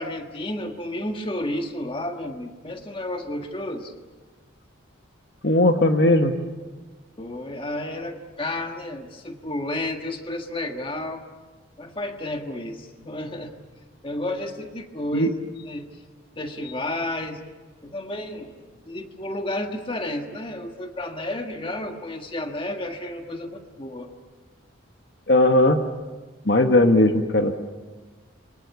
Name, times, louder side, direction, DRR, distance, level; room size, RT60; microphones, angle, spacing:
voice 1, 0.0-3.9 7.2-11.2 11.8-13.5 14.0-15.3 15.6-16.0 16.4-17.4 17.8-18.6 18.9-24.1, left 1 dB, 25° left, 4 dB, 1.7 m, -31 dB
voice 2, 5.4-6.3 15.1-15.3 25.3-25.8 26.4-27.5, left 1 dB, 55° left, 6 dB, 1.4 m, -18 dB
28.5 x 25.0 x 7.0 m, 1.3 s
head